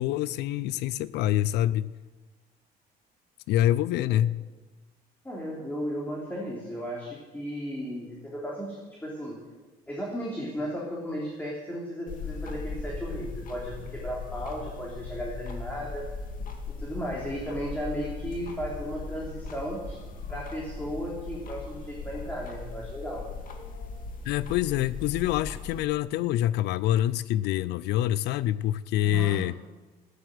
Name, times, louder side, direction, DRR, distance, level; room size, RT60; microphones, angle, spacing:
voice 1, 0.0-1.9 3.5-4.4 24.2-29.5, left 13 dB, 80° left, 19 dB, 0.5 m, -26 dB
voice 2, 5.2-9.4 9.9-16.1 16.7-20.0 20.3-23.2 29.0-29.4, equal, 10° left, -4 dB, 3.2 m, -35 dB
sound 1, 12.1-25.8, left 4 dB, 55° left, 2.3 m, -39 dB
13.0 x 9.8 x 7.7 m, 1.2 s
cardioid pair, 110°, 17 cm